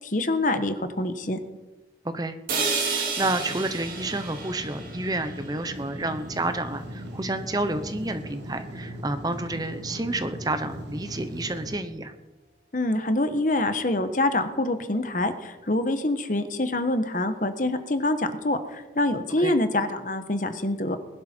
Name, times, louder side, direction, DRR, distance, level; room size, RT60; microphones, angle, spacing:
voice 1, 0.0-1.4 12.7-21.0, left 2 dB, 45° left, 9 dB, 1.2 m, -25 dB
voice 2, 2.0-2.4 2.9-12.1 19.4-19.6, right 2 dB, 20° right, 9 dB, 0.9 m, -30 dB
sound 1, 2.5-6.5, right 4 dB, 50° right, 3.7 m, -31 dB
sound 2, 3.2-11.8, equal, 80° right, 2.0 m, -39 dB
20.5 x 11.5 x 4.5 m, 1.1 s
head